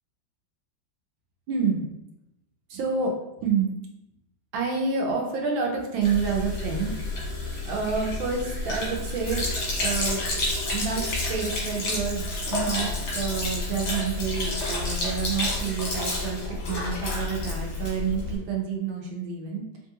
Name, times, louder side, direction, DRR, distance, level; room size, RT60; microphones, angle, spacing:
voice 1, 1.5-1.9 2.7-3.1 3.4-3.7 4.5-7.0 7.7-9.5 9.8-10.2 10.7-19.6, right 5 dB, 80° right, 0 dB, 1.6 m, -28 dB
Sink (filling or washing), 6.0-18.4, left 2 dB, 85° left, 2.0 m, -30 dB
5.2 x 2.4 x 2.8 m, 0.88 s
omnidirectional pair, 2.1 m